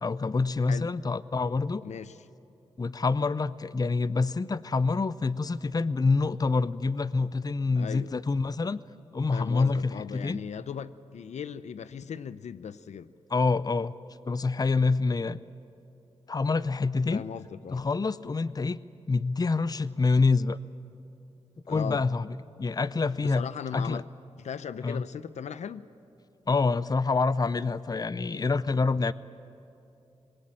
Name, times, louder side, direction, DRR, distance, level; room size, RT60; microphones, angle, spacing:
voice 1, 0.0-1.9 2.8-8.8 9.1-10.4 13.3-13.9 14.2-15.4 16.3-17.2 17.7-18.8 19.1-20.6 21.7-23.4 23.7-24.0 24.8-25.0 26.5-29.1, left 4 dB, 35° left, 0.6 m, -26 dB
voice 2, 1.8-2.2 7.8-8.1 9.3-13.1 17.1-17.8 21.7-22.1 23.2-24.0 24.4-25.9, left 7 dB, 80° left, 0.6 m, -38 dB
25.5 x 20.5 x 8.9 m
cardioid pair, 60°, 12 cm